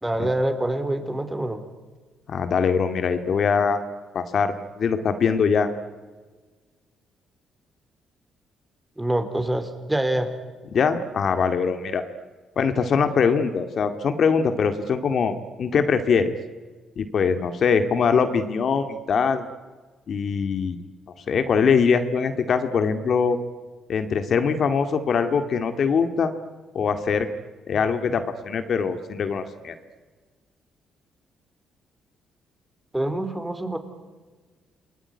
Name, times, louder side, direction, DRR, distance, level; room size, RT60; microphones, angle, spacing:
voice 1, 0.0-1.6 9.0-10.3 32.9-33.8, right 1 dB, 10° right, 8 dB, 4.0 m, -25 dB
voice 2, 2.3-3.8 4.1-5.7 10.7-12.0 12.6-16.3 17.0-19.5 20.1-20.8 21.3-23.4 23.9-26.3 26.7-27.3 27.7-29.7, left 6 dB, 55° left, 8 dB, 2.1 m, -22 dB
28.5 x 20.5 x 9.9 m, 1.4 s
cardioid pair, 90°, 0 cm